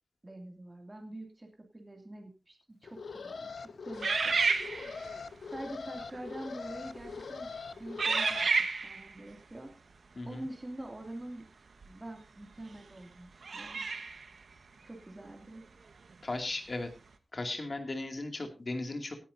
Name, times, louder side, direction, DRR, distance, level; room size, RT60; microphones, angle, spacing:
voice 1, 0.2-4.4 5.4-8.5 8.8-9.7 10.2-11.5 11.8-13.9 14.8-15.6, right 1 dB, 25° right, 2 dB, 2.6 m, -45 dB
Alarm, 2.8-8.5, left 5 dB, 75° left, 0.6 m, -42 dB
sound 1, 4.0-5.2 6.0-6.2 6.9-7.2 8.0-9.1 11.8-11.9 13.4-14.3, right 4 dB, 75° right, 1.2 m, -30 dB
voice 2, 10.1-10.5 16.2-16.9 17.3-19.2, left 2 dB, 45° left, 5 dB, 2.4 m, -36 dB
18.0 x 11.0 x 2.7 m, 0.32 s
wide cardioid pair, 95°, 0 cm